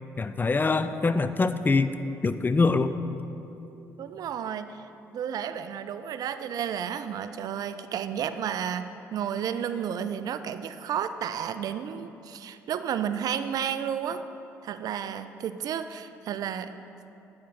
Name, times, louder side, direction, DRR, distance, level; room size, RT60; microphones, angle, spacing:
voice 1, 0.2-1.9 2.2-2.9, left 3 dB, 25° left, 11 dB, 0.4 m, -24 dB
voice 2, 4.0-14.2 14.6-16.7, right 8 dB, 60° right, 11 dB, 0.3 m, -32 dB
8.6 x 6.6 x 3.6 m, 2.9 s
hypercardioid pair, 55°, 7 cm